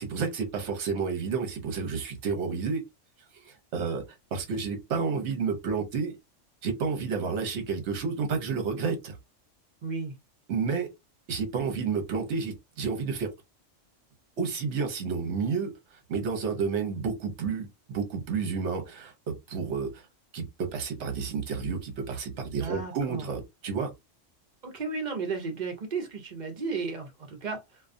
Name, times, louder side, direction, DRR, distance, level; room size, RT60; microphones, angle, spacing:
voice 1, 0.0-2.8 3.4-4.0 4.3-6.2 6.6-9.2 10.5-10.9 11.3-13.3 14.4-15.7 16.1-20.0 20.3-23.9, right 5 dB, 65° right, 1.0 m, -30 dB
voice 2, 9.8-10.1 22.4-23.3 24.6-27.8, right 4 dB, 45° right, 0.7 m, -34 dB
2.3 x 2.3 x 2.5 m
omnidirectional pair, 1.3 m